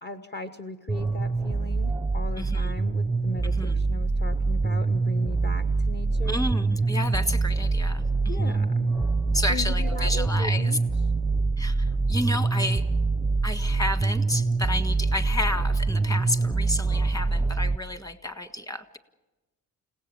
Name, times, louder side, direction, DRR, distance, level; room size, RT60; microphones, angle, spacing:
voice 1, 0.0-6.5 8.3-8.9 9.5-10.8, left 2 dB, 30° left, 5 dB, 1.1 m, -38 dB
sound 1, 0.9-17.8, right 3 dB, 5° right, 0.7 m, -25 dB
voice 2, 2.4-2.7 3.6-3.8 6.2-8.7 9.3-10.7 11.6-12.8 13.4-19.0, left 1 dB, 10° left, 10 dB, 1.6 m, -31 dB
29.5 x 17.5 x 7.0 m, 1.1 s
cardioid pair, 115°, 33 cm